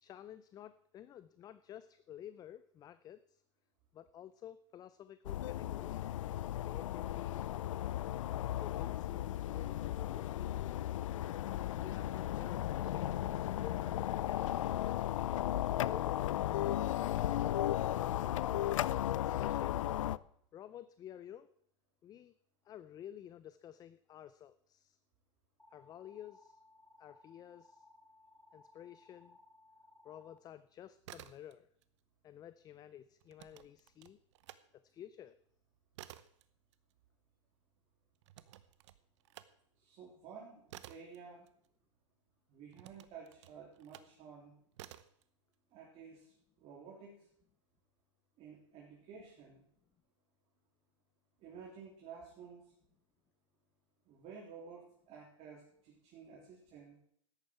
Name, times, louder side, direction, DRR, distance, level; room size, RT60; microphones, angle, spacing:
voice 1, 0.0-3.4 3.9-6.2 6.5-7.5 8.6-10.6 11.8-15.0 15.7-17.4 18.5-19.9 20.5-21.5 22.0-22.3 22.6-25.0 25.7-26.6 27.0-27.8 28.5-29.4 30.0-31.7 32.2-34.2 34.7-35.4, left 11 dB, 25° left, 15 dB, 0.5 m, -52 dB
sound 1, 5.2-20.2, left 12 dB, 75° left, 0.5 m, -35 dB
sound 2, 25.6-30.4, left 2 dB, 10° left, 1.1 m, -63 dB
sound 3, 30.9-31.9 32.2-34.6 35.0-42.1 42.7-44.2 44.7-45.2, right 13 dB, 65° right, 0.9 m, -55 dB
voice 2, 39.8-41.5 42.5-44.5 45.7-47.3 48.4-49.6 51.4-52.7 54.1-57.0, right 6 dB, 40° right, -2 dB, 3.4 m, -53 dB
14.0 x 10.5 x 4.6 m, 0.68 s
hypercardioid pair, 115°, 17 cm